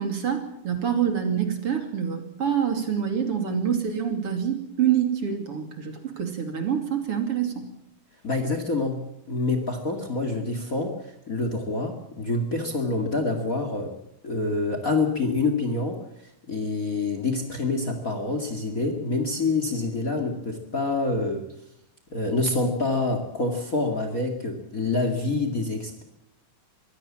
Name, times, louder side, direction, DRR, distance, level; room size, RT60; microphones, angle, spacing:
voice 1, 0.0-7.6, right 8 dB, 50° right, 6 dB, 3.5 m, -26 dB
voice 2, 8.2-9.0 9.3-13.9 14.2-21.4 22.1-26.0, left 3 dB, 30° left, 6 dB, 2.3 m, -27 dB
23.5 x 16.5 x 7.4 m, 0.78 s
omnidirectional pair, 3.6 m